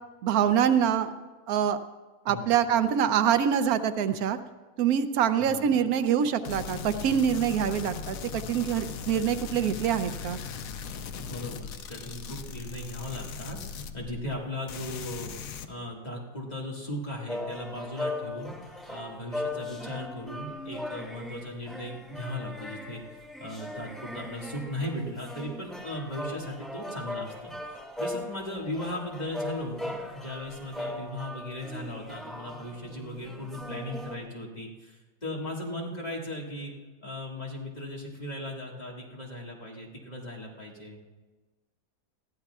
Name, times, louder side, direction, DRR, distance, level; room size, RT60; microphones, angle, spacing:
voice 1, 0.2-1.1 1.5-1.8 2.3-4.4 4.8-10.4, right 8 dB, 90° right, 11 dB, 1.1 m, -25 dB
voice 2, 5.3-5.8 11.2-15.3 15.7-23.0 23.4-36.7 37.0-41.0, left 1 dB, 30° left, -3 dB, 2.0 m, -37 dB
sound 1, 6.4-14.4 14.7-15.7, left 6 dB, 75° left, 1.1 m, -39 dB
sound 2, 17.3-34.2, left 1 dB, ahead, 1.4 m, -38 dB
21.0 x 14.5 x 2.4 m, 1.3 s
omnidirectional pair, 1.5 m